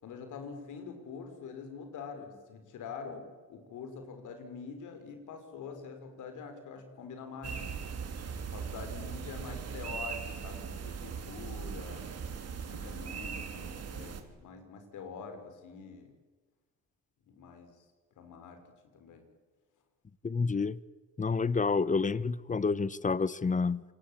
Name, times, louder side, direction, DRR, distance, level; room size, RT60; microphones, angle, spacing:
voice 1, 0.0-7.8 8.4-12.1 12.7-16.1 17.3-17.8 18.2-18.6 18.9-19.3, left 5 dB, 80° left, 5.5 m, -45 dB
sound 1, 7.4-14.2, right 6 dB, 55° right, 3.2 m, -39 dB
voice 2, 20.2-20.8 21.2-23.8, left 4 dB, 25° left, 1.0 m, -29 dB
27.5 x 21.0 x 8.9 m
cardioid pair, 90°, 30 cm